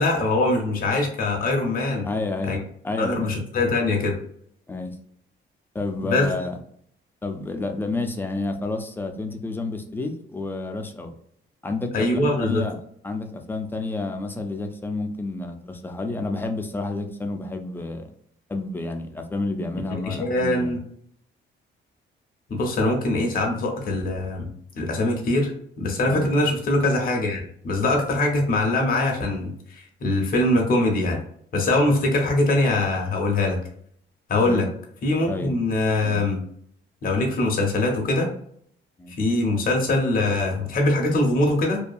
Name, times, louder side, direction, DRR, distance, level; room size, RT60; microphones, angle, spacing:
voice 1, 0.0-2.0 2.5-2.6 3.0-4.2 6.0-6.3 11.9-12.6 20.1-20.8 22.5-24.5 24.7-25.5 25.8-31.2 31.5-33.6 34.3-34.6 35.0-36.4 37.0-38.3 39.2-41.9, left 2 dB, 45° left, 1 dB, 0.7 m, -22 dB
voice 2, 2.0-2.6 2.8-3.4 4.7-4.9 5.7-6.6 7.2-11.1 11.6-18.1 18.5-20.7 26.0-26.3 34.4-34.7 35.3-35.5 36.0-36.2 39.0-39.1, left 2 dB, 10° left, 4 dB, 0.4 m, -30 dB
2.7 x 2.2 x 2.3 m, 0.64 s
cardioid pair, 90°, 20 cm